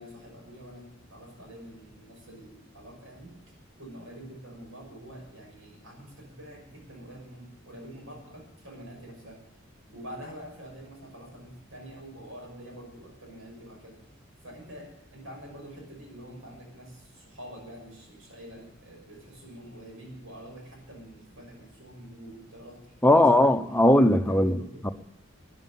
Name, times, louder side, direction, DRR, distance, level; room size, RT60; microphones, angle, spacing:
voice 1, 0.0-3.4 3.8-9.4 9.9-14.2 14.4-23.5 24.1-24.9, equal, 80° right, 0 dB, 6.0 m, -46 dB
voice 2, 23.0-24.9, left 1 dB, 10° left, 7 dB, 0.7 m, -20 dB
11.5 x 10.5 x 9.0 m, 0.83 s
head